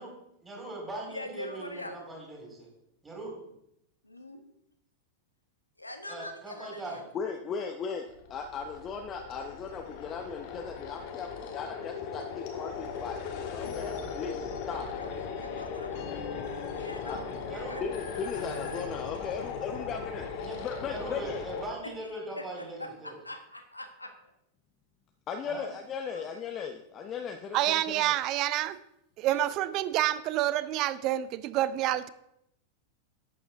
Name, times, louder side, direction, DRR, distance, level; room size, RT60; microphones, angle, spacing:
voice 1, 0.4-2.7 3.0-3.3 6.1-7.0 17.5-17.8 20.4-20.6 20.8-23.1 25.4-25.7, right 2 dB, 15° right, -2 dB, 3.8 m, -40 dB
voice 2, 1.1-2.1 4.1-4.4 5.8-7.0 14.6-16.1 16.7-17.2 17.5-18.3 21.8-24.3 26.1-26.4 29.2-29.6, left 1 dB, 85° left, 6 dB, 1.2 m, -44 dB
voice 3, 7.1-8.0 8.3-14.9 17.0-17.2 17.8-21.4 25.3-27.8, left 6 dB, 30° left, 4 dB, 0.7 m, -37 dB
sound 1, 8.1-21.7, left 6 dB, 45° left, 1.4 m, -38 dB
voice 4, 27.5-28.8 29.2-32.1, right 14 dB, 40° right, 16 dB, 0.5 m, -28 dB
11.0 x 8.1 x 3.5 m, 0.79 s
figure-of-eight pair, 90°, 0 cm